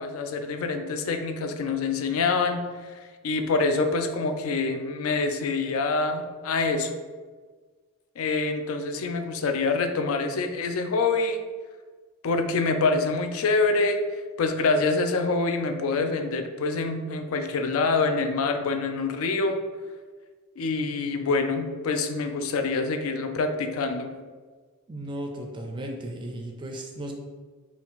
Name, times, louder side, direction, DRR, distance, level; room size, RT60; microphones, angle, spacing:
voice 1, 0.0-6.9 8.2-11.4 12.2-14.0 14.4-19.6 20.6-24.1, left 3 dB, 70° left, 6 dB, 0.4 m, -26 dB
voice 2, 24.9-27.1, right 1 dB, 20° right, 3 dB, 0.4 m, -35 dB
3.8 x 2.3 x 4.0 m, 1.4 s
head